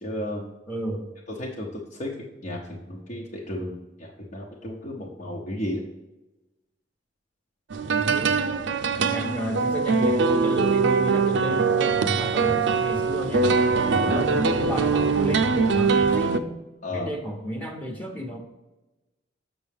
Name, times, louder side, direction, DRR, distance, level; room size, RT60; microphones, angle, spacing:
voice 1, 0.0-0.5 1.4-2.1 2.4-5.8 8.1-8.2 13.9-14.2 16.8-17.1, left 1 dB, 45° left, -3 dB, 1.0 m, -33 dB
voice 2, 0.7-1.1 7.9-8.4 9.1-13.5 14.1-16.6 16.9-18.4, equal, 10° left, 2 dB, 0.9 m, -32 dB
sound 1, 7.7-16.4, right 4 dB, 75° right, 0.5 m, -22 dB
7.5 x 6.1 x 3.5 m, 1.1 s
head